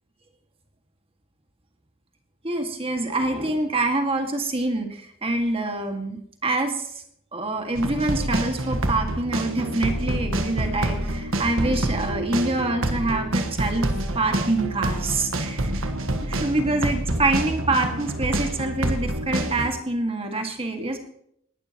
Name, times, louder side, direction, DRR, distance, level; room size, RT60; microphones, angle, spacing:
voice 1, 2.4-6.9 7.3-13.9 14.1-15.7 16.2-21.0, right 2 dB, 30° right, 4 dB, 1.9 m, -26 dB
sound 1, 7.7-19.7, right 1 dB, 80° right, 1.4 m, -27 dB
19.0 x 12.0 x 3.0 m, 0.70 s
head